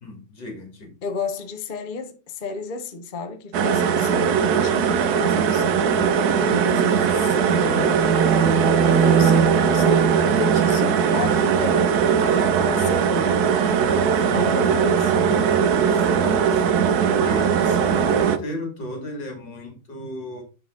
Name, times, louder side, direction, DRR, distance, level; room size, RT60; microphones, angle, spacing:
voice 1, 0.0-1.0 14.2-14.7 15.9-16.9 17.2-20.4, left 1 dB, 60° left, 3.2 m, -35 dB
voice 2, 1.0-8.0 8.9-13.4 14.3-15.3, left 4 dB, 35° left, 0.8 m, -32 dB
sound 1, 3.5-18.4, right 7 dB, 60° right, 1.2 m, -20 dB
sound 2, 7.7-12.0, right 6 dB, 85° right, 1.8 m, -23 dB
10.5 x 4.1 x 3.8 m
omnidirectional pair, 2.2 m